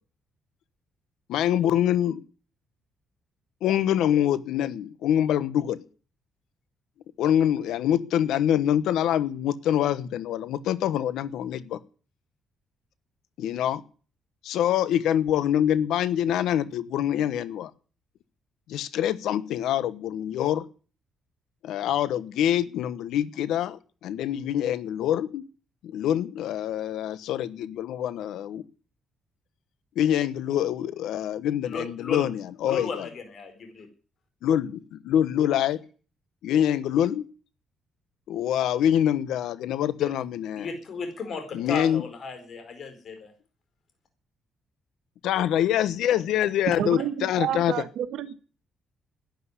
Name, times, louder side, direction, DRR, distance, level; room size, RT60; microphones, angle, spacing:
voice 1, 1.3-2.2 3.6-5.8 7.2-11.8 13.4-13.8 14.4-17.7 18.7-20.6 21.6-25.4 25.8-28.6 30.0-33.1 34.4-35.8 36.4-37.2 38.3-40.7 41.5-42.0 45.2-47.7, left 10 dB, 85° left, 16 dB, 1.0 m, -25 dB
voice 2, 31.6-32.3 32.6-33.9 40.0-40.1 40.6-43.3, left 4 dB, 55° left, 7 dB, 4.6 m, -35 dB
voice 3, 46.8-48.3, right 10 dB, 80° right, 8 dB, 1.9 m, -30 dB
12.0 x 10.5 x 9.7 m, 0.40 s
cardioid pair, 90°, 0 cm